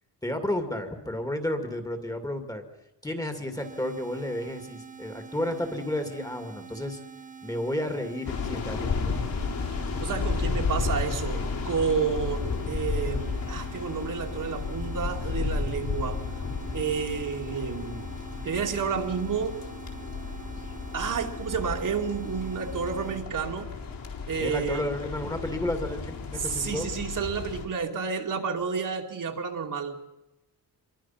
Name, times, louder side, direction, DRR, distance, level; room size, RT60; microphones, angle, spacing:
voice 1, 0.2-2.6 3.0-7.0 7.4-9.2 24.4-26.9, left 1 dB, 10° left, 6 dB, 2.4 m, -32 dB
sound 1, 3.6-23.3, right 6 dB, 20° right, 0.9 m, -46 dB
sound 2, 8.3-27.7, left 4 dB, 55° left, 4.1 m, -33 dB
voice 2, 10.0-16.3 16.7-18.1 18.4-19.6 20.9-23.7 24.3-24.9 26.4-30.0, right 6 dB, 50° right, 3 dB, 2.6 m, -30 dB
26.5 x 23.0 x 5.9 m, 0.95 s
wide cardioid pair, 160°, 42 cm